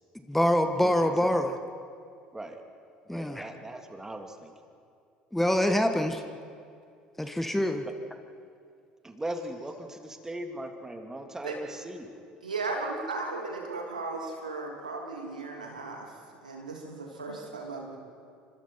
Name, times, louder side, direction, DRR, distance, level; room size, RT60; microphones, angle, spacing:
voice 1, 0.3-1.5 3.1-3.5 5.3-6.2 7.2-7.8, left 1 dB, 5° left, 7 dB, 1.6 m, -25 dB
voice 2, 3.1-4.5 7.3-7.4 7.9-8.0 9.2-12.1, right 1 dB, 10° right, 5 dB, 2.7 m, -39 dB
voice 3, 12.4-16.1 16.4-18.0, right 3 dB, 85° right, 1 dB, 2.9 m, -36 dB
29.5 x 25.5 x 4.6 m, 2.3 s
figure-of-eight pair, 60°, 4 cm